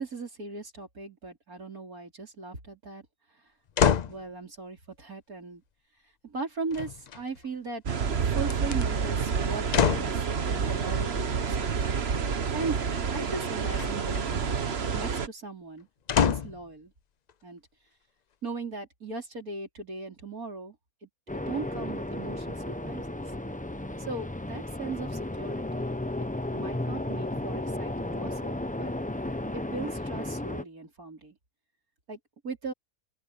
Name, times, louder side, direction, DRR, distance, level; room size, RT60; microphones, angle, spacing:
voice 1, 0.0-3.0 4.1-5.6 6.2-7.8 8.2-11.7 12.5-12.8 13.1-14.6 14.9-15.9 16.2-16.9 17.4-17.6 18.4-20.7 21.0-21.1 21.3-23.2 24.1-25.9 26.5-28.9 29.5-31.4 32.1-32.2 32.4-32.7, right 3 dB, 75° right, 5.2 m, -38 dB
sound 1, 3.8-4.2 6.7-7.4 8.4-8.8 9.7-10.2 13.7-14.3 16.1-16.6 17.3-17.4, left 7 dB, 90° left, 0.3 m, -26 dB
sound 2, 7.9-15.3, right 6 dB, 45° right, 1.3 m, -29 dB
sound 3, 21.3-30.6, left 1 dB, 10° left, 0.6 m, -34 dB
open air
omnidirectional pair, 1.6 m